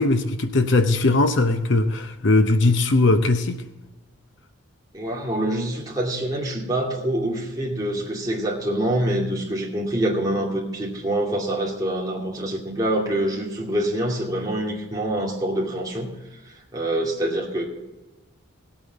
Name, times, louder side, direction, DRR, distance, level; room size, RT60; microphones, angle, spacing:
voice 1, 0.0-3.5, left 2 dB, 55° left, 8 dB, 0.8 m, -19 dB
voice 2, 4.9-16.1 16.4-17.6, right 1 dB, 15° right, -3 dB, 2.5 m, -25 dB
18.5 x 8.8 x 4.1 m, 1.1 s
head